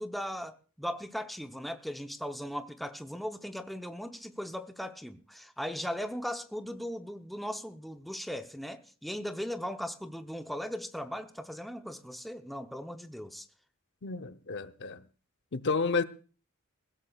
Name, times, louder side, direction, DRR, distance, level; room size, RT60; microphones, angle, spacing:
voice 1, 0.0-13.5, equal, ahead, 0.7 m, -38 dB
voice 2, 14.0-15.0 15.5-16.0, left 4 dB, 55° left, 0.7 m, -31 dB
22.0 x 16.5 x 2.3 m
head